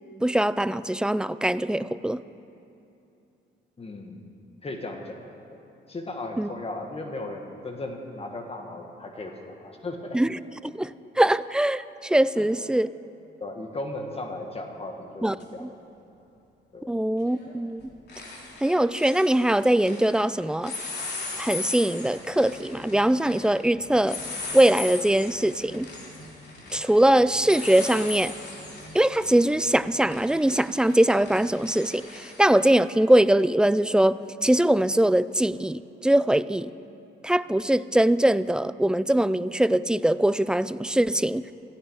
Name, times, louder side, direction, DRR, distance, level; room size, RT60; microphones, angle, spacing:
voice 1, 0.2-2.2 6.4-6.5 10.1-10.3 10.6-12.9 15.2-15.7 16.9-17.9 18.6-20.8 21.4-24.2 24.5-25.9 26.7-28.3 28.9-34.2 34.4-36.7 37.2-41.4, right 1 dB, 5° right, 16 dB, 0.3 m, -22 dB
voice 2, 3.8-4.2 4.6-5.6 5.9-10.2 12.4-12.5 13.4-15.7 16.7-16.9, left 2 dB, 30° left, 3 dB, 1.8 m, -36 dB
sound 1, 15.4-15.5 17.2-17.5 17.8-20.2 20.6-32.4, left 3 dB, 55° left, 3.4 m, -38 dB
16.5 x 15.5 x 4.8 m, 2.8 s
cardioid pair, 90°, 20 cm